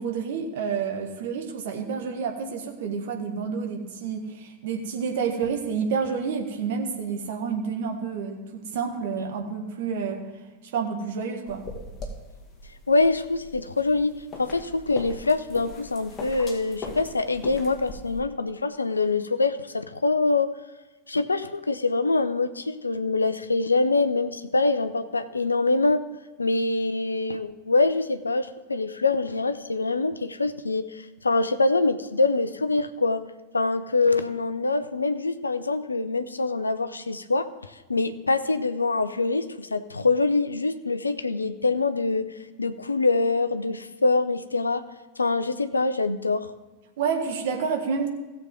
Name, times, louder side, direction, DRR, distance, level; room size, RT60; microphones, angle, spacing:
voice 1, 0.0-10.2 10.7-11.7 47.0-48.1, right 6 dB, 55° right, 4 dB, 1.5 m, -29 dB
sound 1, 11.5-18.2, left 2 dB, 20° left, 2.0 m, -41 dB
voice 2, 12.9-14.1 14.4-20.5 21.1-26.0 26.4-33.2 33.5-37.5 37.9-44.9 45.2-46.5, left 3 dB, 80° left, 12 dB, 0.6 m, -24 dB
16.5 x 7.2 x 3.8 m, 1.2 s
figure-of-eight pair, 90°, 0 cm